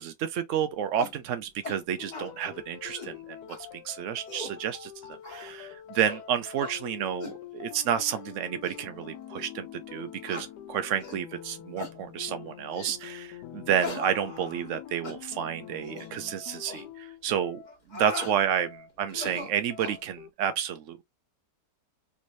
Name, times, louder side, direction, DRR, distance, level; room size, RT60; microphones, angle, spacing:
voice 1, 0.0-17.6 17.9-21.0, right 9 dB, 85° right, 0.6 m, -30 dB
sound 1, 1.0-1.2 1.6-1.8 2.1-2.3 2.7-3.1 3.5-3.6 4.1-4.6 5.2-5.5 5.9-6.2 6.6-6.8 7.2-7.4 8.0-8.2 8.6-8.8 9.4-9.5 10.3-10.5 11.0-11.2 11.8-12.0 12.7-13.0 13.8-14.8 15.0-15.2 15.8-16.1 16.6-16.8 17.7-18.4 19.1-20.0, left 3 dB, 30° left, 1.1 m, -40 dB
sound 2, 2.0-20.3, left 11 dB, 70° left, 1.1 m, -45 dB
3.4 x 3.1 x 2.6 m
omnidirectional pair, 1.9 m